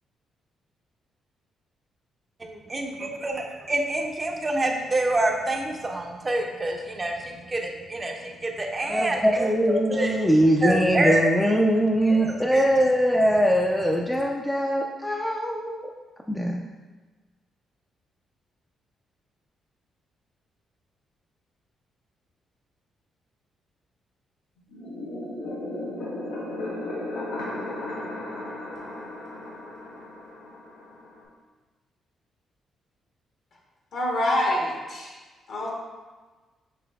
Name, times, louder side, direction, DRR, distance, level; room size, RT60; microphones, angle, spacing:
voice 1, 2.4-10.2 10.6-11.3 12.0-12.6, right 2 dB, 35° right, 2 dB, 0.6 m, -27 dB
voice 2, 8.9-15.9 16.3-16.7, equal, 10° left, 0 dB, 0.4 m, -22 dB
sound 1, 24.7-31.2, left 1 dB, 85° left, 0.9 m, -35 dB
voice 3, 33.9-35.2 35.5-35.7, left 1 dB, 65° left, -2 dB, 1.2 m, -26 dB
5.7 x 3.2 x 2.3 m, 1.3 s
hypercardioid pair, 50°, 0 cm